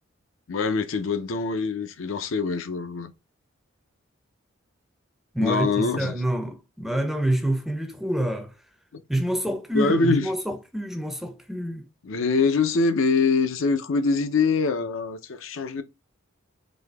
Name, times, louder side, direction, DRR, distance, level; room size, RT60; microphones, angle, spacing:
voice 1, 0.5-3.1 5.4-6.2 8.9-9.0 9.7-10.3 12.0-15.8, left 4 dB, 80° left, 0.6 m, -24 dB
voice 2, 5.3-8.5 9.1-11.8, right 1 dB, ahead, 0.4 m, -27 dB
4.2 x 2.7 x 3.3 m
head